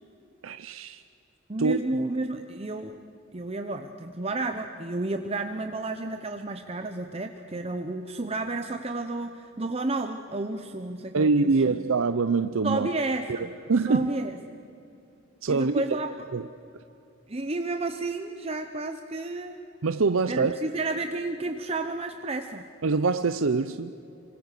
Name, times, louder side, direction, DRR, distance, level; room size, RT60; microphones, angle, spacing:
voice 1, 0.4-1.0 1.6-1.8 11.1-12.9 13.7-14.1 15.4-16.0 16.3-16.4 19.8-20.5 22.8-23.9, right 4 dB, 85° right, 0.6 m, -24 dB
voice 2, 1.5-3.0 3.3-11.8 12.6-13.6 13.9-14.4 15.5-16.1 17.3-19.6 20.3-22.7, right 2 dB, 30° right, 0.8 m, -31 dB
26.5 x 25.5 x 6.8 m
head